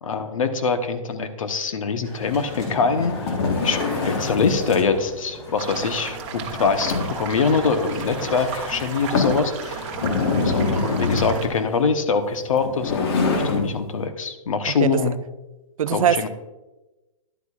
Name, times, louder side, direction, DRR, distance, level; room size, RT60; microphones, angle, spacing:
voice 1, 0.0-3.1 3.6-3.8 4.0-9.9 10.4-15.2 15.9-16.3, left 5 dB, 75° left, 1.0 m, -23 dB
sound 1, 2.0-11.9, equal, 20° left, 2.3 m, -38 dB
sound 2, 2.5-4.6 6.4-7.3 7.9-8.0 8.5-8.6 9.1-9.5 9.9-11.4 12.5-13.7, left 4 dB, 45° left, 1.4 m, -24 dB
sound 3, 5.6-11.5, right 6 dB, 25° right, 1.1 m, -34 dB
voice 2, 15.8-16.3, right 9 dB, 80° right, 0.5 m, -21 dB
11.0 x 8.2 x 2.4 m
hypercardioid pair, 170°, 17 cm